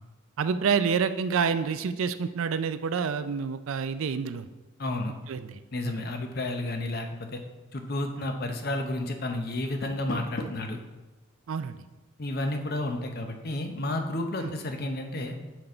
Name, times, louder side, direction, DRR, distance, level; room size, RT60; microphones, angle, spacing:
voice 1, 0.4-4.5 5.3-5.6 5.9-6.0 11.5-11.8 14.4-14.5, right 6 dB, 80° right, 12 dB, 0.4 m, -28 dB
voice 2, 4.8-5.1 5.7-7.4 7.7-10.8 12.2-15.3, left 1 dB, 50° left, 5 dB, 0.7 m, -31 dB
Door, 9.5-10.8, left 1 dB, 80° left, 0.9 m, -39 dB
6.0 x 5.1 x 4.4 m, 1.1 s
head